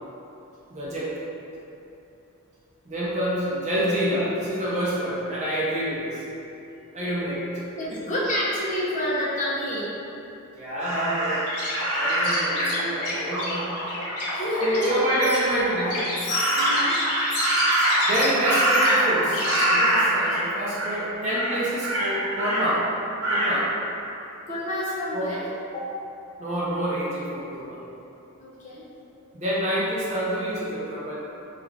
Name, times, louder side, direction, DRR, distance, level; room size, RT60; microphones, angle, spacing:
voice 1, 0.7-1.1 2.9-6.2 6.9-7.5 7.9-8.0 10.5-11.4 12.0-13.7 14.6-16.1 18.1-22.8 23.3-23.7 25.1-25.3 26.4-27.8 29.3-31.2, right 1 dB, 30° right, -7 dB, 0.5 m, -27 dB
voice 2, 7.7-10.0 14.3-14.9 16.5-17.0 24.5-25.5 25.7-25.9 28.4-28.8, equal, 35° left, -7 dB, 0.5 m, -28 dB
Crow, 10.8-12.5 16.3-17.0 17.4-19.2 19.4-20.4 20.7-21.0 21.3-22.6 23.2-23.5, right 1 dB, 70° right, 0.8 m, -24 dB
sound 1, 11.5-19.6, left 1 dB, 85° left, 0.7 m, -28 dB
2.4 x 2.3 x 3.2 m, 2.9 s
head